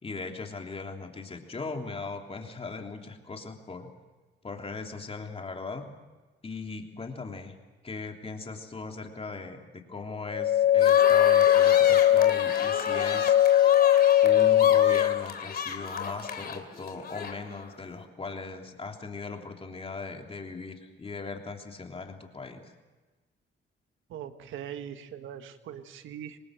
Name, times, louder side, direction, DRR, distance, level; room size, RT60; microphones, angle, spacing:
voice 1, 0.0-3.9 4.4-5.9 6.4-7.5 7.8-13.4 14.2-22.7, left 4 dB, 30° left, 3 dB, 3.3 m, -39 dB
sound 1, 10.3-15.3, left 12 dB, 65° left, 0.7 m, -20 dB
sound 2, 10.8-17.7, left 6 dB, 50° left, 2.9 m, -32 dB
voice 2, 24.1-26.4, right 9 dB, 80° right, 9 dB, 1.5 m, -41 dB
25.5 x 19.5 x 7.6 m, 1.2 s
cardioid pair, 90°, 20 cm